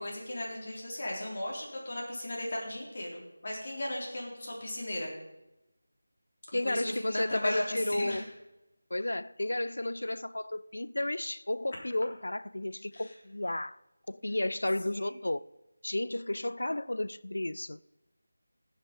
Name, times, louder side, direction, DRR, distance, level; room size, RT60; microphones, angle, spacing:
voice 1, 0.0-5.1 6.6-8.3 12.9-13.1 14.9-15.2, left 1 dB, 45° left, 3.5 m, -36 dB
voice 2, 6.5-8.2 8.9-13.8 14.1-15.4 15.8-17.8, left 1 dB, 65° left, 0.4 m, -33 dB
15.0 x 9.7 x 5.2 m
figure-of-eight pair, 165°, 0 cm